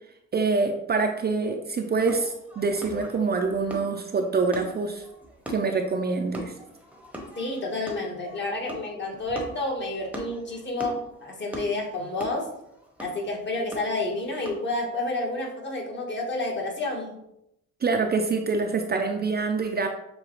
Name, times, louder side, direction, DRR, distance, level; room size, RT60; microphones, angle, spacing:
voice 1, 0.3-5.0 5.5-6.5 17.8-19.9, right 4 dB, 35° right, 4 dB, 0.5 m, -25 dB
sound 1, 2.0-14.8, equal, 5° right, 0.9 m, -41 dB
voice 2, 7.4-12.5 13.0-17.2, left 2 dB, 40° left, 0 dB, 1.4 m, -30 dB
6.8 x 2.3 x 3.1 m, 0.80 s
cardioid pair, 90°, 30 cm